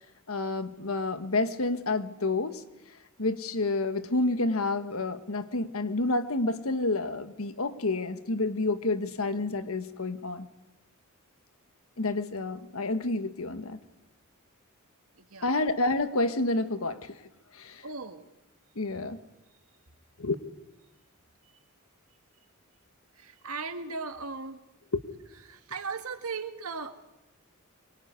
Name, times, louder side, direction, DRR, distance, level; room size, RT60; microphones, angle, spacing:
voice 1, 0.3-2.6 3.2-10.5 12.0-13.8 15.4-17.2 17.5-17.8 18.7-19.2 20.2-20.3 24.9-25.0, left 2 dB, 75° left, 10 dB, 1.5 m, -29 dB
voice 2, 15.2-15.6 17.8-18.2 18.9-19.0 23.2-24.6 25.5-27.1, right 4 dB, 80° right, 7 dB, 2.1 m, -37 dB
25.0 x 23.0 x 9.7 m, 0.95 s
head